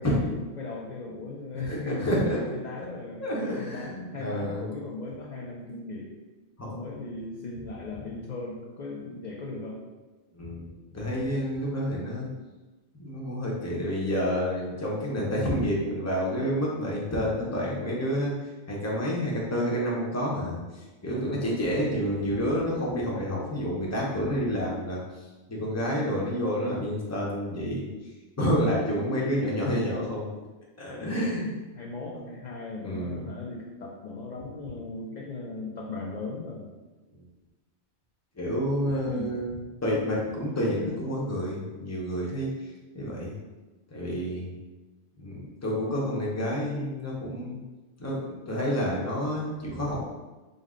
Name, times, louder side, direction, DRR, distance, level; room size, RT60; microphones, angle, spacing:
voice 1, 0.0-3.2 3.6-6.1 6.7-9.8 21.2-21.7 31.0-31.4 31.7-36.7 39.1-39.4, left 3 dB, 60° left, -2 dB, 0.5 m, -37 dB
voice 2, 1.7-2.4 3.2-4.6 6.6-6.8 10.3-10.7 10.9-12.3 12.9-18.3 18.7-20.6 21.0-25.0 25.5-27.8 28.4-30.3 30.8-31.5 32.8-33.3 38.4-39.5 39.8-42.6 42.9-43.3 43.9-44.5 45.2-47.6 48.0-50.0, equal, 15° left, -4 dB, 0.6 m, -29 dB
5.2 x 2.1 x 3.6 m, 1.2 s
omnidirectional pair, 1.2 m